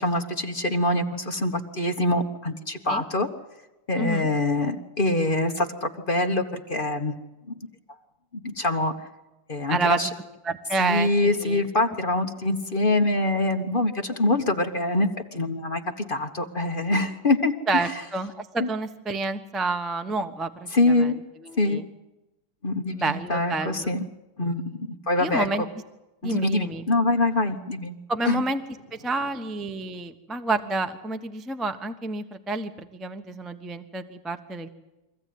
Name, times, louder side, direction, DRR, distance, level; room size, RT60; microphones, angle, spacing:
voice 1, 0.0-3.3 3.9-7.2 7.5-7.6 8.3-9.1 9.5-10.1 10.8-15.8 16.1-17.9 18.6-18.7 20.7-21.2 21.6-21.8 22.6-24.0 24.4-25.5 26.2-28.0 28.2-28.4, left 2 dB, 30° left, 5 dB, 1.2 m, -24 dB
voice 2, 4.0-4.3 9.7-10.0 10.4-11.6 17.7-21.1 21.5-21.9 22.9-23.9 25.2-25.6 26.2-26.9 28.1-28.6 28.9-34.7, right 3 dB, ahead, 7 dB, 0.6 m, -29 dB
24.5 x 15.5 x 9.5 m, 1.0 s
omnidirectional pair, 2.4 m